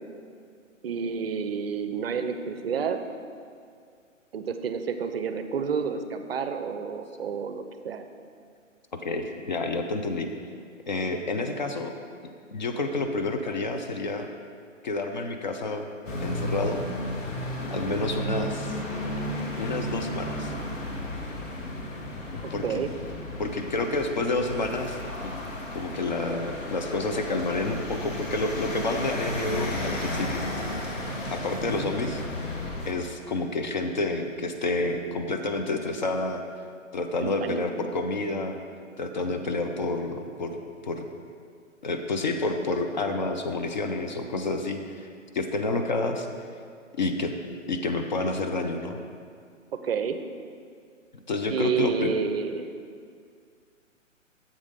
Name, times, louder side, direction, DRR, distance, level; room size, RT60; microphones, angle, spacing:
voice 1, 0.8-3.0 4.3-8.0 22.6-22.9 37.2-37.6 49.7-50.2 51.5-52.7, right 6 dB, 50° right, 8 dB, 0.5 m, -29 dB
voice 2, 9.0-10.3 10.9-11.9 12.5-14.3 14.8-15.9 16.2-16.9 17.7-18.8 19.6-20.5 22.5-22.8 23.4-25.3 25.7-30.4 31.3-32.2 32.9-36.4 36.9-38.6 39.0-41.1 41.8-45.1 45.3-46.3 47.0-47.3 47.7-49.0 51.3-52.1, left 2 dB, 40° left, 5 dB, 0.4 m, -29 dB
sound 1, 16.0-32.9, left 1 dB, 75° left, 1.6 m, -33 dB
sound 2, 26.6-32.8, equal, 20° left, 1.2 m, -52 dB
7.4 x 5.0 x 5.2 m, 2.2 s
figure-of-eight pair, 135°, 39 cm